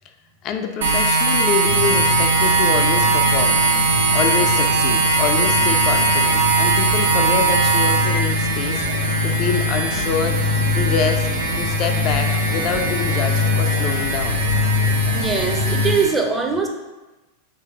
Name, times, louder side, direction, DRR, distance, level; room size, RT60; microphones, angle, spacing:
voice 1, 0.4-3.6 4.1-8.9 9.2-10.4 10.7-11.3 11.6-14.4, left 6 dB, 35° left, 5 dB, 0.3 m, -26 dB
sound 1, 0.8-16.1, right 3 dB, 65° right, 0.7 m, -20 dB
sound 2, 1.6-16.0, left 4 dB, 70° left, 0.7 m, -24 dB
sound 3, 9.9-11.7 12.3-14.2 14.8-15.7, right 2 dB, 30° right, 1.0 m, -35 dB
voice 2, 15.1-16.7, right 5 dB, 10° right, 2 dB, 0.6 m, -22 dB
3.3 x 3.3 x 4.2 m, 1.1 s
figure-of-eight pair, 90°, 0 cm